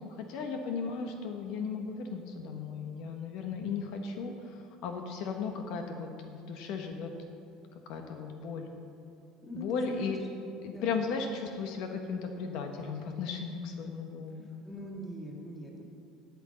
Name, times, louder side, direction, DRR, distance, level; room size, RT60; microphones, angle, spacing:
voice 1, 0.1-7.1 7.9-8.7 9.5-10.2 10.6-14.5, left 5 dB, 60° left, 4 dB, 0.9 m, -36 dB
voice 2, 9.4-10.2 10.7-11.0 14.6-15.8, equal, 10° left, -1 dB, 1.6 m, -41 dB
9.4 x 8.4 x 7.6 m, 2.6 s
cardioid pair, 170°, 0 cm